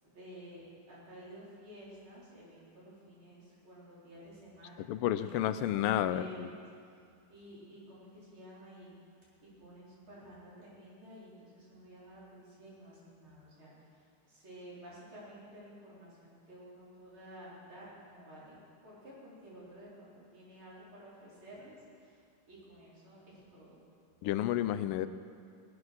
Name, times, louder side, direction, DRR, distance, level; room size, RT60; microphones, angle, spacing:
voice 1, 0.0-6.6 7.3-8.9 9.4-18.6 18.8-23.8, equal, 65° right, -8 dB, 5.0 m, -52 dB
voice 2, 4.9-6.5 24.2-25.1, left 12 dB, 90° left, 12 dB, 1.5 m, -31 dB
19.0 x 9.5 x 6.1 m, 2.3 s
omnidirectional pair, 2.4 m